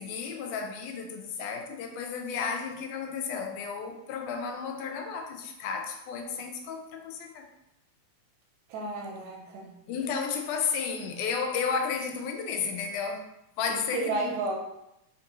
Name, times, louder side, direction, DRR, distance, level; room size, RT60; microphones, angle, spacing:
voice 1, 0.0-7.5 9.9-14.3, left 6 dB, 90° left, 3 dB, 2.1 m, -33 dB
voice 2, 8.7-9.8 13.7-14.6, right 3 dB, 80° right, 0 dB, 1.8 m, -32 dB
4.5 x 3.6 x 2.9 m, 0.86 s
omnidirectional pair, 3.5 m